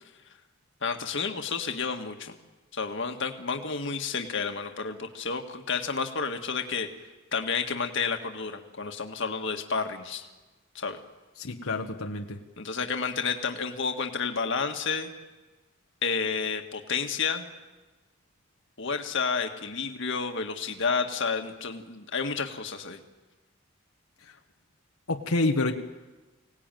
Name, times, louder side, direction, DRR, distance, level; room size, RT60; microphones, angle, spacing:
voice 1, 0.8-2.3 2.7-6.9 7.3-10.3 10.8-11.0 12.6-15.1 16.0-17.5 18.8-23.0, left 5 dB, 60° left, 4 dB, 1.8 m, -30 dB
voice 2, 11.4-12.4 24.2-24.3 25.1-25.7, left 2 dB, 90° left, 3 dB, 1.5 m, -28 dB
25.0 x 18.0 x 9.2 m, 1.2 s
head